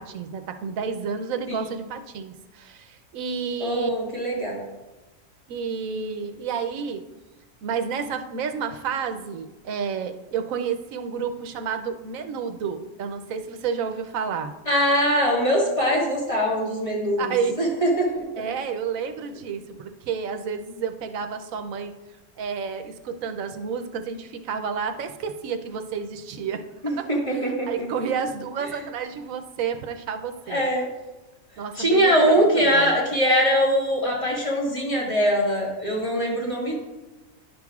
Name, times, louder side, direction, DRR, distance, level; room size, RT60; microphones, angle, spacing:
voice 1, 0.0-3.9 5.5-7.0 7.6-14.5 17.2-17.6 18.4-21.9 22.4-30.6 31.6-33.0, right 6 dB, 90° right, 7 dB, 1.1 m, -30 dB
voice 2, 3.6-4.6 14.7-18.1 26.8-27.9 30.5-30.9 31.8-36.7, equal, 25° left, -4 dB, 1.9 m, -22 dB
10.5 x 6.4 x 2.4 m, 1.1 s
omnidirectional pair, 1.4 m